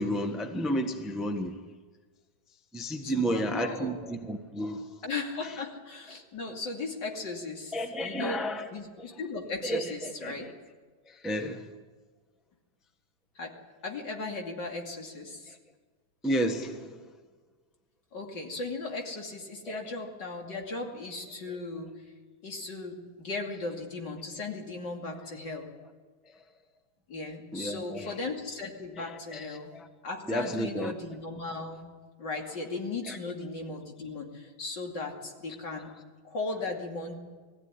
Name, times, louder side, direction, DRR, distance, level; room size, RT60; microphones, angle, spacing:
voice 1, 0.0-1.7 2.7-5.0 7.7-8.7 9.0-9.1 9.6-10.5 11.1-11.7 16.2-17.0 19.7-19.9 27.5-28.1 29.0-29.9 30.3-30.9 33.1-33.2, equal, ahead, 5 dB, 1.0 m, -32 dB
voice 2, 3.0-3.9 5.0-8.4 8.7-10.5 13.3-13.5 13.8-15.6 18.1-21.9 22.4-25.6 27.1-29.7 30.0-31.9 32.2-35.9 36.2-37.1, left 3 dB, 60° left, 1 dB, 3.3 m, -37 dB
21.5 x 15.0 x 9.7 m, 1.4 s
omnidirectional pair, 2.2 m